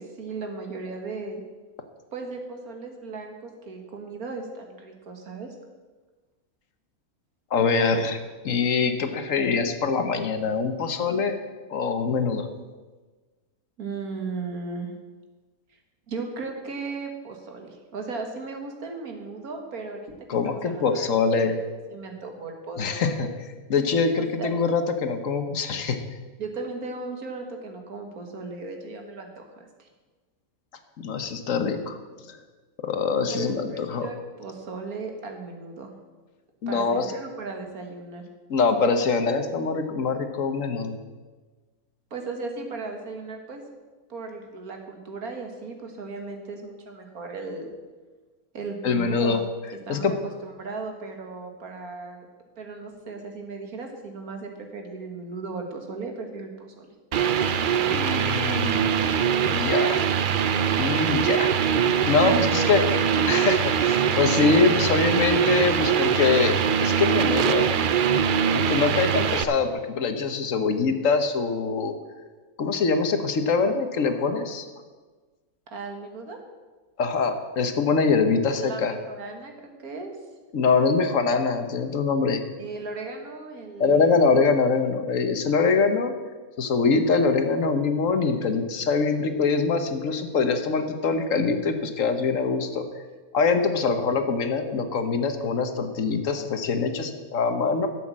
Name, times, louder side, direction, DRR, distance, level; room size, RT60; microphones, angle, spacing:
voice 1, 0.0-1.4 2.1-5.5 13.8-14.9 16.1-21.6 21.9-23.4 24.4-24.6 26.4-29.9 33.3-35.9 36.7-38.2 42.1-43.6 44.1-47.7 48.5-49.4 49.9-52.3 52.6-56.9 62.1-63.4 75.7-76.4 78.5-79.5 79.8-80.1 82.6-84.2, right 3 dB, 85° right, 3 dB, 2.2 m, -36 dB
voice 2, 7.5-8.2 8.4-11.4 11.7-12.5 20.3-21.5 22.8-23.3 23.7-26.0 31.0-32.0 32.3-32.4 32.8-34.1 36.6-37.1 38.5-41.0 48.8-49.4 49.9-50.1 57.9-59.0 59.5-60.0 60.8-61.5 62.1-62.8 63.3-67.7 68.5-71.9 72.6-74.7 77.0-78.9 80.5-82.4 83.8-86.1 86.6-92.8 93.3-97.9, left 4 dB, 65° left, 8 dB, 1.4 m, -24 dB
sound 1, 57.1-69.4, right 8 dB, 60° right, 0.5 m, -23 dB
12.0 x 7.8 x 7.4 m, 1.3 s
omnidirectional pair, 1.5 m